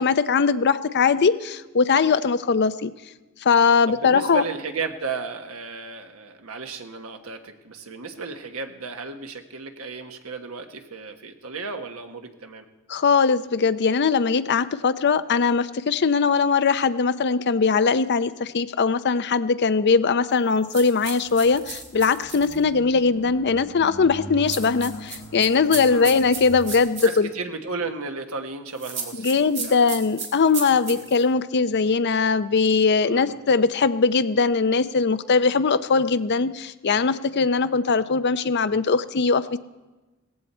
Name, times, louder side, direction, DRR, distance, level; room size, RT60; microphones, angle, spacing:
voice 1, 0.0-2.9 3.4-4.4 12.9-27.3 29.2-39.6, left 5 dB, 50° left, 13 dB, 0.6 m, -21 dB
voice 2, 3.9-12.6 25.9-26.2 27.0-29.9 30.9-31.1 33.0-33.4, right 4 dB, 75° right, 6 dB, 1.3 m, -34 dB
sound 1, 20.7-22.6 24.5-27.1 28.8-31.2, right 5 dB, 30° right, 2.4 m, -34 dB
sound 2, 21.3-26.9, left 1 dB, 70° left, 1.8 m, -41 dB
17.5 x 15.0 x 4.4 m, 1.2 s
head